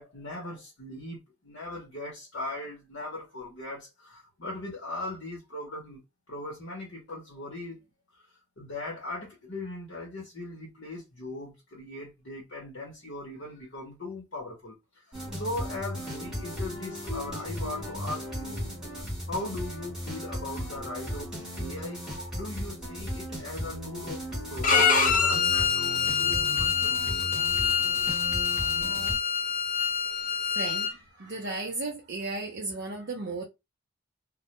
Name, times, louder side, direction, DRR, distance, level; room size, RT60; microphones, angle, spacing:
voice 1, 0.0-6.0 6.3-7.8 8.1-8.2 8.6-27.3, left 2 dB, 60° left, 0.8 m, -39 dB
sound 1, 15.1-29.1, equal, ahead, 1.0 m, -36 dB
Bowed string instrument, 24.6-30.9, left 6 dB, 40° left, 0.5 m, -25 dB
voice 2, 30.5-33.4, right 3 dB, 55° right, 0.5 m, -35 dB
2.1 x 2.1 x 2.9 m
head